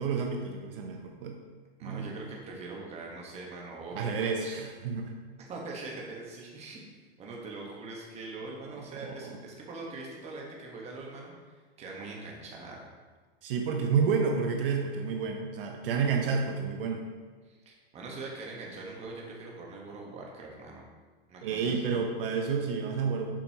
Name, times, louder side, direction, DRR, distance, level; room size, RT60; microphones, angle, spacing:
voice 1, 0.0-1.4 1.8-2.1 3.9-5.2 8.7-9.4 13.4-17.1 21.4-23.3, right 5 dB, 60° right, 3 dB, 0.8 m, -30 dB
voice 2, 1.8-4.6 5.4-12.8 17.4-20.9 21.3-21.9, right 3 dB, 20° right, -2 dB, 1.2 m, -42 dB
7.4 x 5.2 x 2.8 m, 1.4 s
hypercardioid pair, 140°, 32 cm